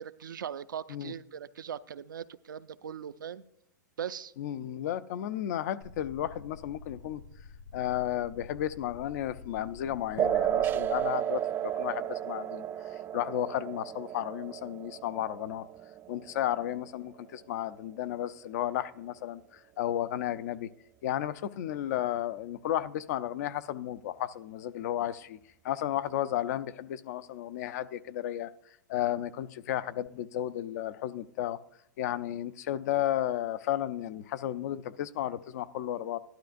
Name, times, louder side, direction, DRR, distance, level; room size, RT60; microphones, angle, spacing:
voice 1, 0.0-3.4 4.0-4.3, right 8 dB, 85° right, 13 dB, 0.5 m, -40 dB
voice 2, 4.4-7.2 7.7-12.7 13.1-15.7 16.1-20.7 21.0-25.4 25.6-28.5 28.9-31.6 32.0-36.2, left 12 dB, 60° left, 14 dB, 0.5 m, -33 dB
sound 1, 5.8-11.0, left 4 dB, 90° left, 1.9 m, -48 dB
sound 2, 10.2-17.2, right 11 dB, 20° right, 0.3 m, -33 dB
16.0 x 12.0 x 2.6 m, 0.76 s
hypercardioid pair, 125°, 10 cm